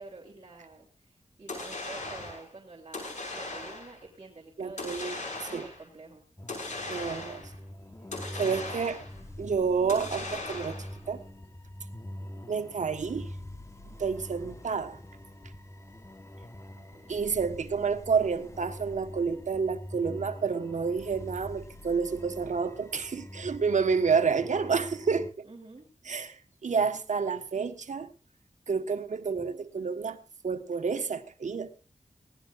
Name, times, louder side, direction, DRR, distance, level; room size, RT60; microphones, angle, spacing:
voice 1, 0.0-6.2 16.7-17.2 25.5-25.9 29.3-29.4, right 3 dB, 40° right, -2 dB, 3.3 m, -49 dB
sound 1, 1.5-2.5 2.9-4.0 4.8-5.8 6.5-7.5 8.1-9.2 9.9-11.0, left 2 dB, 85° left, 5.9 m, -38 dB
voice 2, 4.6-5.1 5.5-5.7 6.9-7.5 8.4-9.0 9.4-10.8 11.1-11.2 12.5-13.3 14.0-15.0 17.1-25.5 26.0-28.1 28.7-30.2 30.4-31.7, right 5 dB, 85° right, 8 dB, 1.4 m, -29 dB
sound 2, 6.4-25.3, left 1 dB, 25° left, 1.3 m, -45 dB
23.0 x 17.0 x 2.6 m, 0.31 s
wide cardioid pair, 75°, 12 cm